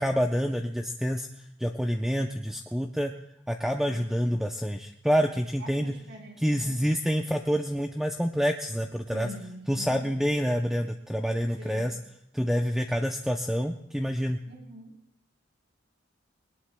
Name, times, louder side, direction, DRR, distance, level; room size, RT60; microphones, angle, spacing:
voice 1, 0.0-3.1 3.5-5.9 6.4-9.3 9.7-12.0 12.3-14.4, equal, ahead, 3 dB, 0.5 m, -27 dB
voice 2, 3.9-4.4 5.6-6.8 9.1-10.1 11.6-12.1 14.5-15.0, equal, 65° right, 0 dB, 4.6 m, -45 dB
22.0 x 19.0 x 2.2 m, 0.77 s
head